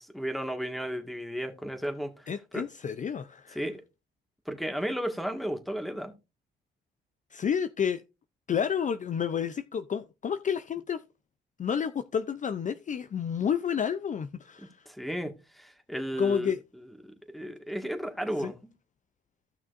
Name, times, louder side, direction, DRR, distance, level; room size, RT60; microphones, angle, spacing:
voice 1, 0.0-2.7 3.5-3.8 4.5-6.1 14.9-16.5 17.3-18.7, equal, ahead, 1.8 m, -34 dB
voice 2, 2.3-3.6 7.3-8.0 8.5-11.0 11.6-14.9 16.2-16.6 18.4-18.5, left 7 dB, 40° left, 0.5 m, -30 dB
15.0 x 6.0 x 2.6 m
cardioid pair, 90°, 20 cm